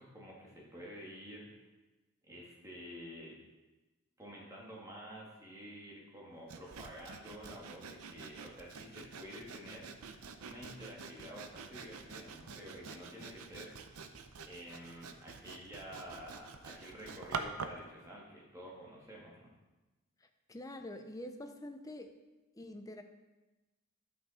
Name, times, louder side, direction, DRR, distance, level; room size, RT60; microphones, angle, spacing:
voice 1, 0.0-1.6 2.3-3.4 4.2-14.0 14.4-19.5, equal, 15° right, -5 dB, 2.1 m, -50 dB
Sawing, 6.5-17.9, right 4 dB, 80° right, 0.6 m, -47 dB
voice 2, 20.2-22.2 22.5-23.0, left 1 dB, 15° left, 6 dB, 0.6 m, -46 dB
11.0 x 5.8 x 4.2 m, 1.1 s
head